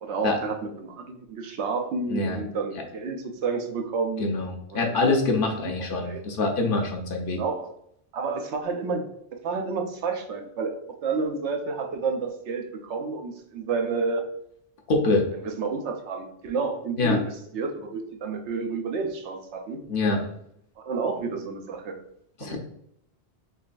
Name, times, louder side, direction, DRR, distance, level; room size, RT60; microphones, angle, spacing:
voice 1, 0.0-4.3 4.7-5.1 6.0-6.2 7.3-7.7 8.1-9.1 9.4-14.3 15.4-19.8 20.8-22.0 22.4-22.6, right 4 dB, 80° right, 5 dB, 0.9 m, -30 dB
voice 2, 2.1-2.4 4.2-7.4 14.9-15.2 17.0-17.2 19.9-20.2 22.4-22.6, left 3 dB, 55° left, 1 dB, 0.7 m, -24 dB
3.8 x 3.1 x 2.5 m, 0.72 s
omnidirectional pair, 1.2 m